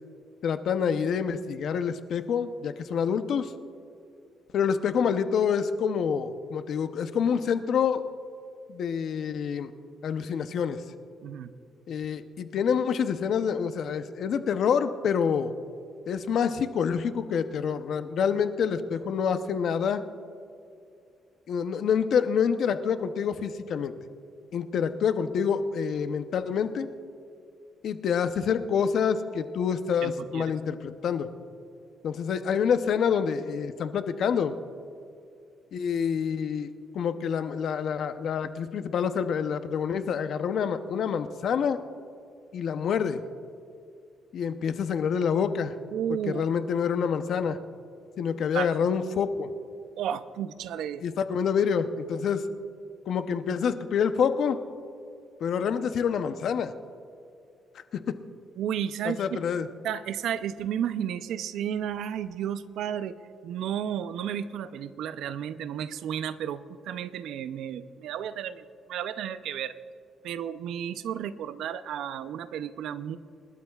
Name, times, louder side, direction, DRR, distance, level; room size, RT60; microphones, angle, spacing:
voice 1, 0.4-3.5 4.5-8.0 8.7-9.7 10.0-10.8 11.9-15.5 16.1-20.0 21.5-23.9 24.5-26.9 27.8-31.3 32.0-34.5 35.7-41.8 42.5-43.2 44.3-45.7 46.3-47.6 48.2-49.5 51.0-52.5 53.1-54.6 55.4-56.7 57.9-58.2 59.0-59.7, left 7 dB, 65° left, 10 dB, 0.7 m, -27 dB
voice 2, 30.0-30.4 45.9-46.5 48.5-48.7 50.0-51.0 58.6-59.4 59.8-63.1 63.4-69.7 70.2-73.2, right 9 dB, 80° right, 13 dB, 0.5 m, -32 dB
27.0 x 12.5 x 2.4 m, 2.5 s
cardioid pair, 115°, 0 cm